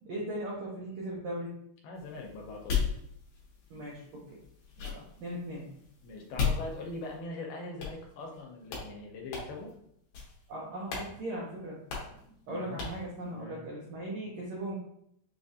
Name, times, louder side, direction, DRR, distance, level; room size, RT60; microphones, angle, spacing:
voice 1, 0.0-1.5 3.7-4.4 4.8-5.7 6.1-6.2 10.5-11.8 12.5-14.8, right 1 dB, 85° right, -5 dB, 1.5 m, -38 dB
voice 2, 1.8-2.9 6.0-9.7 12.5-12.9 13.3-13.7, left 2 dB, 85° left, 0 dB, 2.6 m, -42 dB
sound 1, 2.0-7.3 7.8-8.4 8.7-8.9 9.3-9.7 10.1-10.5 10.9-11.1 11.4-11.5 11.9-12.2 12.8-13.1, left 6 dB, 65° left, 2.3 m, -36 dB
6.5 x 2.5 x 2.6 m, 0.72 s
omnidirectional pair, 4.3 m